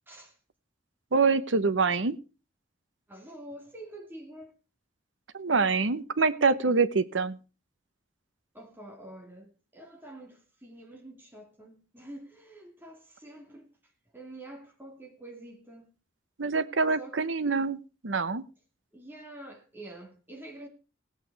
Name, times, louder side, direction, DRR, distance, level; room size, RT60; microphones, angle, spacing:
voice 1, 0.1-0.4 3.1-4.5 8.5-15.9 17.0-17.2 18.9-20.7, right 1 dB, 10° right, 2.4 m, -47 dB
voice 2, 1.1-2.2 5.3-7.4 16.4-17.8 18.0-18.4, right 4 dB, 90° right, 0.9 m, -25 dB
17.5 x 8.3 x 4.6 m
head